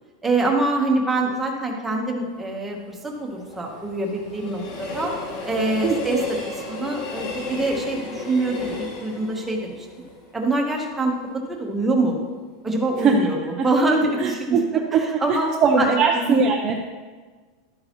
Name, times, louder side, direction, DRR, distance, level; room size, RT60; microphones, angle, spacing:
voice 1, 0.2-5.1 5.4-6.2 6.5-9.9 10.3-11.1 11.5-12.2 12.6-14.8 15.2-15.5 15.8-16.4, right 2 dB, 5° right, 0 dB, 1.1 m, -24 dB
Train, 2.3-11.4 11.8-11.9, left 3 dB, 45° left, 2.1 m, -34 dB
voice 2, 14.2-16.9, right 5 dB, 20° right, 1 dB, 0.5 m, -21 dB
12.0 x 8.6 x 3.0 m, 1.4 s
supercardioid pair, 170°, 3 cm